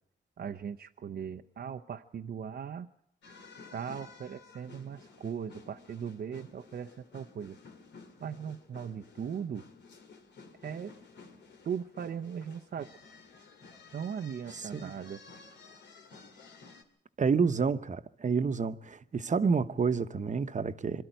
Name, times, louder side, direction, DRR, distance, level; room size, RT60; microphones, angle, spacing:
voice 1, 0.4-2.9 3.7-7.6 8.2-9.6 10.6-10.9 11.6-12.9 13.9-15.2, right 7 dB, 65° right, 0.7 m, -38 dB
sound 1, 3.2-16.8, left 4 dB, 90° left, 2.5 m, -54 dB
voice 2, 14.5-14.9 17.2-21.0, right 5 dB, 45° right, 1.0 m, -29 dB
23.5 x 12.5 x 9.1 m
cardioid pair, 80°, 18 cm